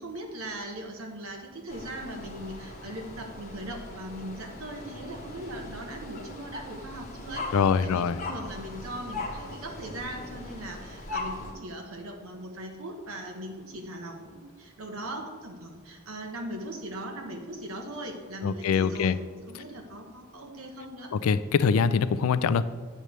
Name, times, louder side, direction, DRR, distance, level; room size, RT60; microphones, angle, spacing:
voice 1, 0.0-19.2 19.5-21.1, right 1 dB, 90° right, 3 dB, 1.2 m, -39 dB
sound 1, 1.7-11.5, left 2 dB, 35° left, 1.1 m, -40 dB
voice 2, 7.5-8.2 18.4-19.2 21.1-22.6, left 6 dB, 90° left, 15 dB, 0.4 m, -23 dB
8.9 x 3.2 x 6.6 m, 1.5 s
head